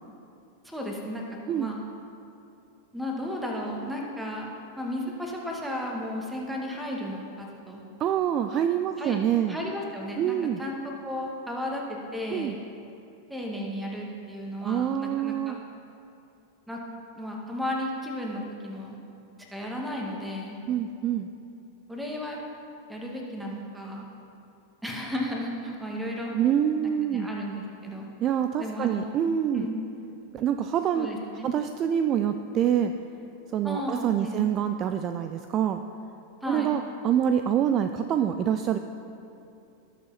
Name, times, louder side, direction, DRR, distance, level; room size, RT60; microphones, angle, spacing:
voice 1, 0.6-1.8 2.9-4.5 4.8-7.8 9.0-9.2 9.5-10.8 11.0-12.6 13.3-15.6 16.7-16.8 17.2-19.0 19.5-20.6 21.9-22.4 22.9-24.1 24.8-26.3 26.8-28.1 28.6-29.2 29.5-29.8 30.9-31.6 33.6-34.5 36.4-36.8, left 1 dB, 5° right, -1 dB, 1.9 m, -34 dB
voice 2, 8.0-9.6 10.2-10.6 12.3-12.5 14.6-15.6 20.7-21.3 26.3-27.3 28.2-29.7 30.3-31.1 31.4-32.9 33.5-35.8 36.5-38.8, right 9 dB, 30° right, 8 dB, 0.4 m, -26 dB
18.5 x 7.3 x 4.1 m, 2.7 s
figure-of-eight pair, 90°, 0 cm